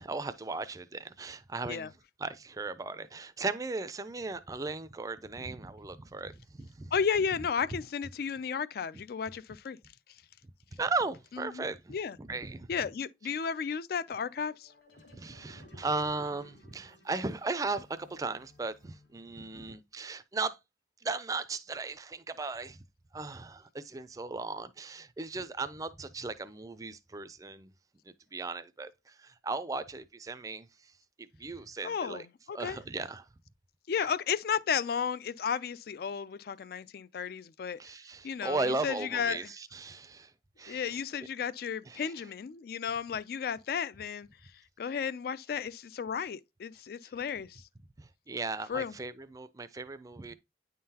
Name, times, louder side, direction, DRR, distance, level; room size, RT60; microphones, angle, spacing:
voice 1, 0.0-1.9 2.2-6.9 7.7-7.8 10.7-12.7 15.1-20.6 21.0-22.8 23.1-27.7 28.1-30.9 31.2-32.3 32.5-33.3 34.0-34.1 37.8-41.0 41.9-42.3 48.0-50.3, right 3 dB, 20° right, 0.4 m, -37 dB
voice 2, 6.9-9.8 11.5-12.2 12.7-14.7 31.8-32.8 33.9-37.8 38.2-39.4 40.7-44.3 44.8-47.6 48.7-48.9, left 6 dB, 55° left, 0.3 m, -33 dB
sound 1, 14.2-19.6, left 2 dB, 75° left, 1.4 m, -59 dB
9.4 x 3.8 x 2.8 m
head